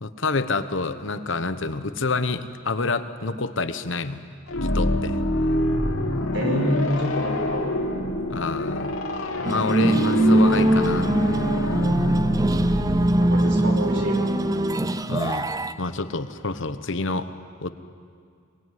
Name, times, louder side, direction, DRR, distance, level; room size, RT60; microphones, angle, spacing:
voice 1, 0.0-4.2 4.6-5.2 8.3-8.9 9.4-11.1 11.7-11.8 15.1-15.5 15.8-17.3 17.6-17.7, left 3 dB, 65° left, 11 dB, 1.1 m, -28 dB
sound 1, 4.5-14.2, left 1 dB, 90° left, 2.6 m, -26 dB
voice 2, 6.3-7.7 13.2-14.3, equal, 60° right, 3 dB, 4.4 m, -27 dB
sound 2, 9.4-15.7, right 1 dB, 15° right, 0.6 m, -21 dB
23.0 x 20.5 x 9.4 m, 2.2 s
head